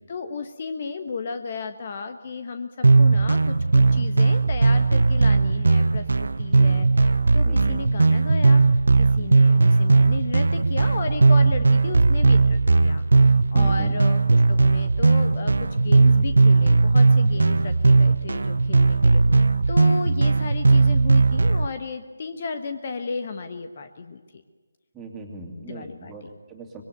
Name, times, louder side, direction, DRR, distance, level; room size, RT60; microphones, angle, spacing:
voice 1, 0.1-8.6 9.0-24.2 25.6-26.3, left 4 dB, 35° left, 8 dB, 1.3 m, -34 dB
sound 1, 2.8-21.7, right 3 dB, 60° right, 0.8 m, -18 dB
voice 2, 7.4-7.8 13.5-14.0 24.9-26.8, right 2 dB, 10° right, 1 dB, 2.8 m, -39 dB
25.5 x 22.5 x 8.1 m, 1.4 s
figure-of-eight pair, 155°, 0 cm